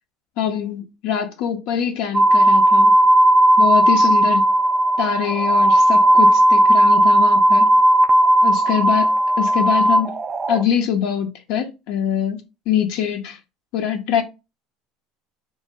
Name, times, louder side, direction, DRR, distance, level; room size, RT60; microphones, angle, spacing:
voice 1, 0.4-2.9 3.6-4.4 5.0-7.7 8.4-10.1 10.5-12.4 12.7-13.4 13.7-14.2, left 9 dB, 70° left, 0.5 m, -23 dB
sound 1, 2.1-10.6, right 1 dB, 25° right, 0.4 m, -15 dB
2.5 x 2.0 x 3.5 m
supercardioid pair, 95°, 0 cm